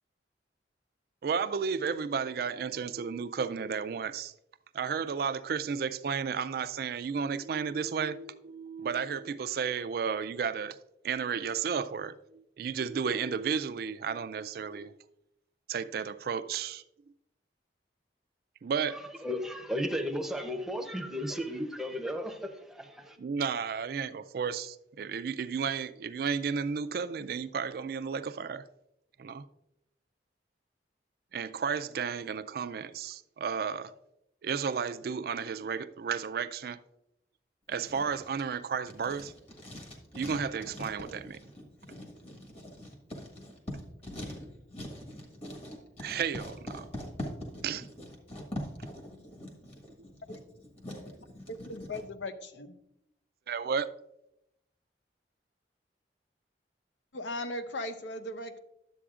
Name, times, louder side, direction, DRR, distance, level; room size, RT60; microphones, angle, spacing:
voice 1, 1.2-4.3 4.7-10.8 11.0-14.9 15.7-16.8 18.6-18.9 23.2-28.6 29.2-29.4 31.3-33.9 34.4-36.8 37.7-39.3 40.1-41.5 46.0-46.9 47.6-47.9 53.5-53.9, right 6 dB, 55° right, 0.3 m, -33 dB
voice 2, 18.9-23.2, equal, 5° right, 0.7 m, -35 dB
Writing, 37.7-52.0, equal, 35° left, 1.4 m, -43 dB
voice 3, 51.5-52.7 57.1-58.6, left 1 dB, 90° left, 0.7 m, -38 dB
11.5 x 7.7 x 2.4 m
head